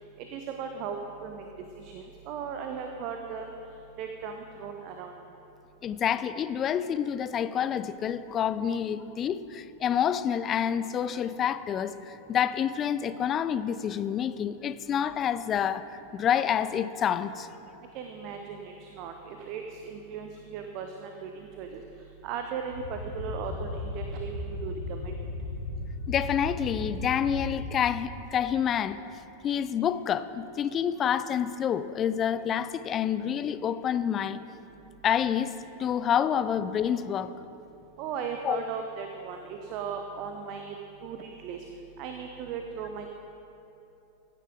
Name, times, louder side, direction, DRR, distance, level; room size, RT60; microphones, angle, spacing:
voice 1, 0.3-1.4 1.8-3.5 4.0-5.1 17.9-21.8 22.2-25.2 38.0-40.8 41.0-41.6 42.0-43.1, right 6 dB, 40° right, 4 dB, 0.8 m, -37 dB
voice 2, 5.8-17.5 26.1-29.1 29.4-34.4 35.0-35.5 35.8-37.3 38.4-38.6, left 9 dB, 30° left, 14 dB, 0.4 m, -28 dB
sound 1, 22.7-28.0, left 2 dB, 80° left, 1.2 m, -36 dB
15.0 x 9.9 x 3.8 m, 3.0 s
figure-of-eight pair, 90°, 0 cm